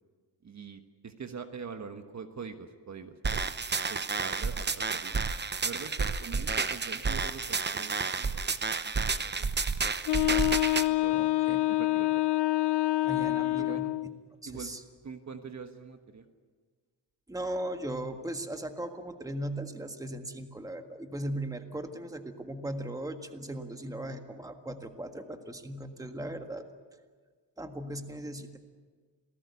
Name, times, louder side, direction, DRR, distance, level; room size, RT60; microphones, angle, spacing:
voice 1, 0.4-3.5 3.9-5.1 5.6-8.6 8.8-9.6 10.1-10.2 10.9-11.2 11.7-12.2 13.5-13.9 14.4-14.7 15.0-16.3, right 5 dB, 40° right, 7 dB, 1.4 m, -44 dB
sound 1, 3.2-10.9, right 4 dB, 25° right, 0.9 m, -31 dB
Wind instrument woodwind instrument, 10.1-14.2, left 17 dB, 70° left, 0.7 m, -27 dB
voice 2, 11.1-11.7 13.0-13.8 14.4-14.8 17.3-26.7 27.6-28.6, right 1 dB, 10° right, 6 dB, 1.6 m, -38 dB
27.0 x 18.5 x 8.3 m, 1.5 s
wide cardioid pair, 130°, 42 cm